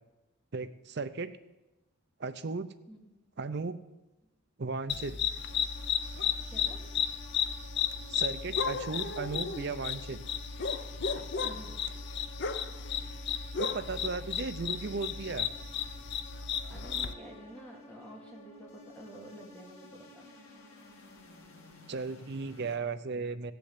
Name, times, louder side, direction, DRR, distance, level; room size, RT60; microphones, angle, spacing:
voice 1, 0.5-1.3 2.2-2.7 3.4-3.8 4.6-5.2 8.1-10.2 13.6-15.5 21.9-23.5, right 4 dB, 50° right, 12 dB, 0.6 m, -36 dB
voice 2, 2.9-3.2 6.5-6.8 11.4-11.8 16.7-20.3, equal, 5° left, -2 dB, 2.5 m, -49 dB
sound 1, 4.9-17.1, left 7 dB, 55° left, 0.6 m, -34 dB
sound 2, 5.4-22.8, left 2 dB, 80° left, 2.1 m, -53 dB
16.0 x 6.9 x 8.0 m, 1.0 s
head